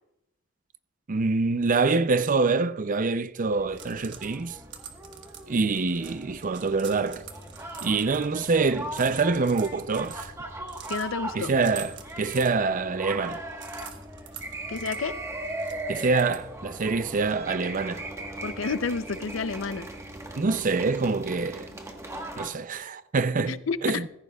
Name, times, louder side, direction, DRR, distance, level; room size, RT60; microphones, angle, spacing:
voice 1, 1.1-4.6 5.5-7.3 7.8-10.3 11.3-13.4 15.9-18.1 20.4-21.7 22.4-24.1, right 4 dB, 45° right, 0.5 m, -25 dB
sound 1, 3.5-22.5, right 1 dB, 15° right, 1.3 m, -39 dB
sound 2, 3.5-16.8, right 8 dB, 65° right, 1.3 m, -47 dB
sound 3, 6.6-21.9, equal, 20° left, 4.6 m, -53 dB
voice 2, 10.9-11.5 14.7-15.2 18.4-19.9 23.5-24.0, left 4 dB, 80° left, 0.6 m, -30 dB
15.5 x 14.5 x 2.3 m
head